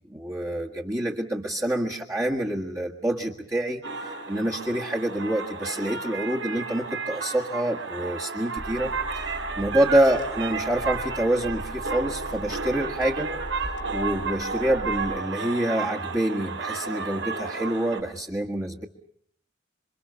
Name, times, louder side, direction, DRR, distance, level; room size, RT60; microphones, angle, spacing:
voice 1, 0.1-13.3 13.9-18.8, right 1 dB, 15° right, -3 dB, 1.7 m, -27 dB
sound 1, 3.8-18.0, right 4 dB, 90° right, 4.1 m, -32 dB
Car / Engine, 8.6-15.2, equal, 45° right, 2.9 m, -40 dB
27.5 x 25.0 x 6.9 m, 0.64 s
head